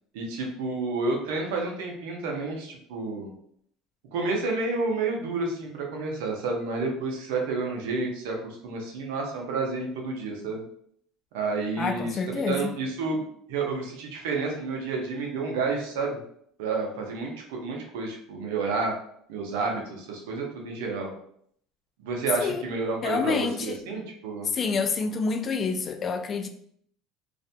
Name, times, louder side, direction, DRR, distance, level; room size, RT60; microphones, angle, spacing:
voice 1, 0.1-3.3 4.1-10.6 11.3-13.2 13.5-16.2 16.6-18.9 19.3-21.1 22.0-24.5, right 3 dB, 90° right, 0.6 m, -30 dB
voice 2, 11.8-12.7 22.4-22.6 23.0-23.8 24.5-26.5, left 5 dB, 35° left, 0.3 m, -28 dB
2.4 x 2.1 x 2.6 m
supercardioid pair, 115°, 0 cm